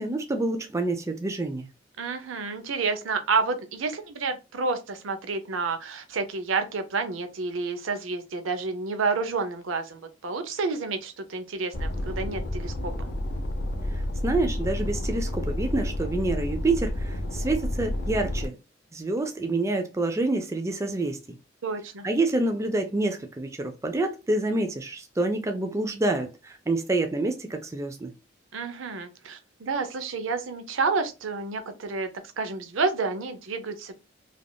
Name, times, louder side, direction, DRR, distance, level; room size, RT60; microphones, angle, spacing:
voice 1, 0.0-1.7 14.2-18.6 18.9-21.2 22.0-28.1, right 2 dB, 15° right, 0.3 m, -27 dB
voice 2, 2.0-13.1 21.6-22.1 28.5-32.1 32.4-34.0, right 4 dB, 85° right, 0.6 m, -29 dB
sound 1, 11.7-18.5, left 1 dB, 55° left, 0.6 m, -30 dB
3.3 x 2.4 x 2.2 m
head